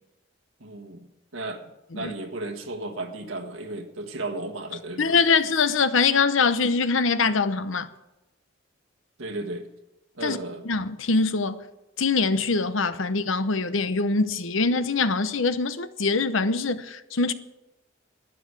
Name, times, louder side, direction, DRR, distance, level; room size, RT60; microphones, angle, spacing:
voice 1, 0.6-1.1 1.3-1.6 1.9-5.2 9.2-9.7 10.2-10.7, right 2 dB, 85° right, 1.5 m, -34 dB
voice 2, 5.0-7.9 10.2-10.4 10.6-11.6 12.0-17.3, left 4 dB, 75° left, 0.9 m, -23 dB
12.0 x 9.7 x 8.1 m
head